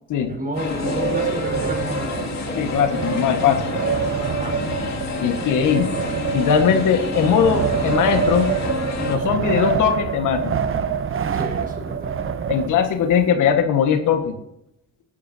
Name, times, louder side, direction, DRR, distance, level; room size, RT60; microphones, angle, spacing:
voice 1, 0.3-2.4 4.2-4.6 11.3-12.1, right 1 dB, 30° right, 2 dB, 4.8 m, -31 dB
sound 1, 0.6-9.2, left 5 dB, 60° left, 2.5 m, -29 dB
Wind, 0.6-13.2, right 6 dB, 45° right, 1.0 m, -26 dB
voice 2, 2.6-3.6 5.2-5.9 6.3-8.6 9.1-10.6 12.5-14.3, left 7 dB, 85° left, 6 dB, 1.6 m, -19 dB
17.0 x 11.5 x 2.8 m, 0.81 s
cardioid pair, 90°, 30 cm